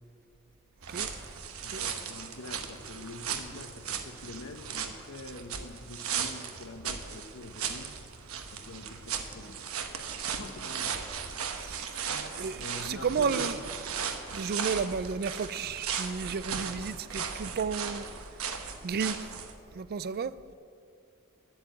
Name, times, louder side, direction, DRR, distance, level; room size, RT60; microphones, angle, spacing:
sound 1, 0.8-19.5, right 7 dB, 75° right, 1.0 m, -37 dB
voice 1, 1.6-7.9 8.5-9.6 10.2-11.0 12.5-13.5, left 2 dB, 85° left, 1.1 m, -44 dB
voice 2, 11.6-13.6 14.3-18.1 18.8-19.2 19.7-20.3, right 5 dB, 45° right, 0.4 m, -33 dB
10.5 x 8.6 x 7.7 m
head